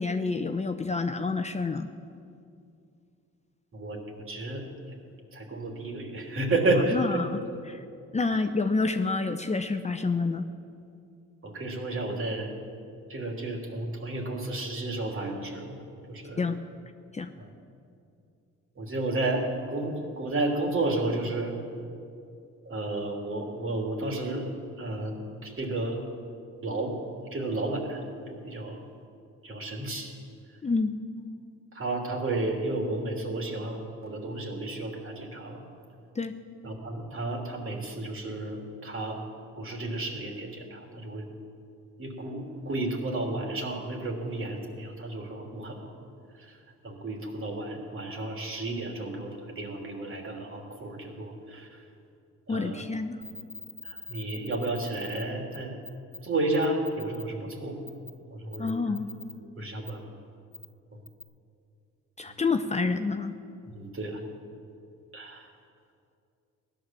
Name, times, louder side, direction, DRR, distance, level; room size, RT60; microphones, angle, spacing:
voice 1, 0.0-1.9 6.9-7.8 8.1-10.5 16.4-16.6 17.1-17.3 30.6-31.0 36.1-36.3 52.5-53.2 58.6-59.1 62.2-63.3, left 4 dB, 20° left, 7 dB, 0.7 m, -28 dB
voice 2, 4.3-4.6 5.3-7.0 11.4-12.5 13.1-15.8 16.1-16.4 17.4-17.5 18.8-21.5 22.6-24.5 24.8-25.2 25.4-26.0 26.6-26.9 27.3-28.0 28.3-28.8 29.4-30.1 31.7-35.6 36.6-39.2 39.6-41.3 42.0-45.9 46.8-49.3 49.5-51.7 52.5-52.8 53.8-55.7 56.2-57.9 58.4-58.7 59.6-60.0 63.7-64.2 65.1-65.4, right 2 dB, 45° right, 1 dB, 3.2 m, -32 dB
sound 1, 53.2-55.2 55.5-55.6 55.8-56.2 56.5-57.2 57.9-58.1 58.5-59.3 59.8-59.9 60.5-60.7 61.1-61.2, left 4 dB, 5° left, 2.9 m, -42 dB
16.5 x 11.5 x 7.5 m, 2.5 s
cardioid pair, 90°, 30 cm